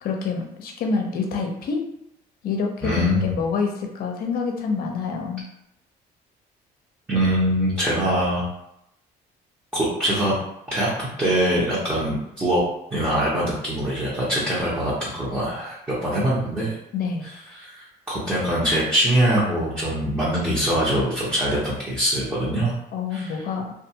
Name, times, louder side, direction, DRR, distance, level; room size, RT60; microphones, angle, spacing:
voice 1, 0.0-1.8 2.4-5.4 16.9-17.3 22.9-23.7, left 5 dB, 60° left, 2 dB, 0.6 m, -26 dB
voice 2, 2.8-3.4 7.1-8.4 9.7-10.3 10.7-12.6 12.9-15.8 16.0-16.8 17.5-22.8 23.1-23.3, right 1 dB, 10° right, -9 dB, 0.9 m, -23 dB
2.5 x 2.4 x 2.8 m, 0.81 s
cardioid pair, 110°, 17 cm